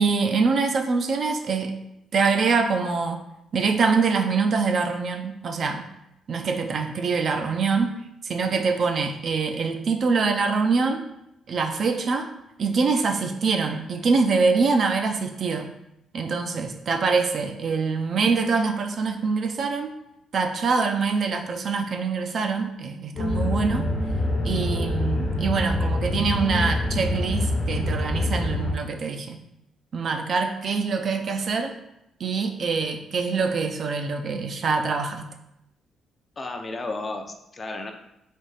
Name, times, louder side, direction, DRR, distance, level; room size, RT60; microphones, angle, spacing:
voice 1, 0.0-1.7 2.1-3.2 3.5-5.9 6.3-7.9 8.2-11.0 11.5-12.3 12.6-15.7 16.1-19.9 20.3-23.9 24.4-29.4 29.9-31.7 32.2-35.3, right 4 dB, 55° right, 5 dB, 0.5 m, -24 dB
sound 1, 23.2-28.7, left 1 dB, 55° left, 0.9 m, -25 dB
voice 2, 36.4-37.9, left 2 dB, 35° left, 4 dB, 0.5 m, -33 dB
3.5 x 2.6 x 4.0 m, 0.85 s
cardioid pair, 90°, 0 cm